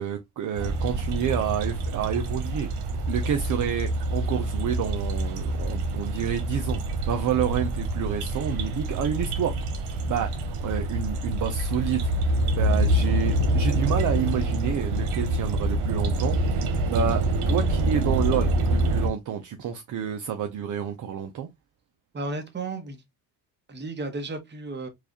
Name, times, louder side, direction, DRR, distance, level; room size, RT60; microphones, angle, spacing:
voice 1, 0.0-2.7 3.1-6.8 7.1-9.5 9.8-21.5, right 9 dB, 50° right, 0.6 m, -29 dB
sound 1, 0.5-19.1, right 1 dB, 85° right, 1.1 m, -26 dB
voice 2, 22.1-23.0 23.7-24.9, right 3 dB, 25° right, 1.2 m, -33 dB
4.7 x 2.5 x 2.8 m
cardioid pair, 105°, 39 cm